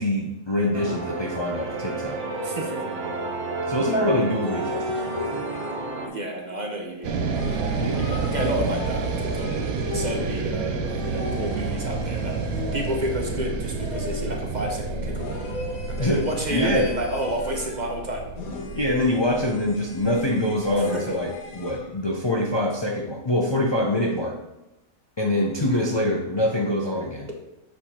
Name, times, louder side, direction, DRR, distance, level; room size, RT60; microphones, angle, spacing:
voice 1, 0.0-2.2 3.7-5.5 7.8-8.0 16.0-16.9 18.7-24.4 25.2-27.3, left 1 dB, 45° left, -1 dB, 0.3 m, -24 dB
sound 1, 0.7-6.1, right 3 dB, 55° right, 1.2 m, -31 dB
voice 2, 2.4-2.8 6.0-7.2 7.4-9.5 9.9-12.4 12.7-15.4 15.9-18.2 20.7-21.2, equal, 40° right, 1 dB, 0.8 m, -31 dB
sound 2, 4.4-6.1 7.3-10.4 10.9-13.2 13.8-14.5 15.1-17.9 18.4-21.9, left 3 dB, 80° left, 1.3 m, -37 dB
sound 3, 7.0-21.3, right 4 dB, 80° right, 1.1 m, -29 dB
7.2 x 3.6 x 4.2 m, 0.93 s
omnidirectional pair, 1.5 m